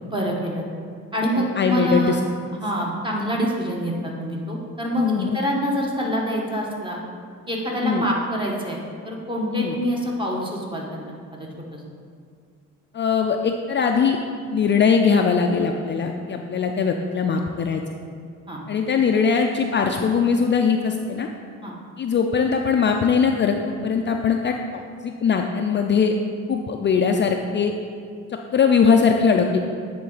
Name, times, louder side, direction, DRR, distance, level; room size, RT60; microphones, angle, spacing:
voice 1, 0.0-0.6 1.1-2.1 2.6-7.0 7.5-8.8 9.0-11.8 18.5-18.6 21.6-21.7, equal, 15° right, -2 dB, 1.4 m, -26 dB
voice 2, 1.3-2.2 4.9-5.4 7.8-8.1 9.5-9.8 12.9-14.2 14.5-17.8 18.7-21.3 22.0-26.2 26.5-27.7 28.5-29.6, left 6 dB, 40° left, 3 dB, 0.4 m, -21 dB
9.5 x 3.9 x 4.0 m, 2.2 s
cardioid pair, 90°, 30 cm